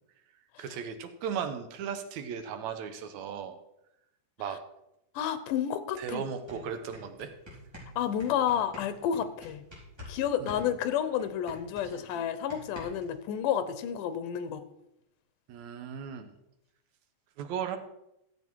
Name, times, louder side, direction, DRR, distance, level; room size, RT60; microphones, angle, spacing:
voice 1, 0.6-3.6 4.4-4.6 6.0-7.3 10.4-10.7 15.5-16.3 17.4-17.8, right 7 dB, 70° right, 8 dB, 2.1 m, -36 dB
voice 2, 5.2-6.2 8.0-9.6 10.1-14.7, left 9 dB, 90° left, 12 dB, 2.4 m, -30 dB
sound 1, 5.9-6.0 6.3-10.2 10.5-13.2, left 1 dB, 10° right, 3.7 m, -47 dB
14.0 x 7.7 x 4.6 m, 0.84 s
omnidirectional pair, 3.6 m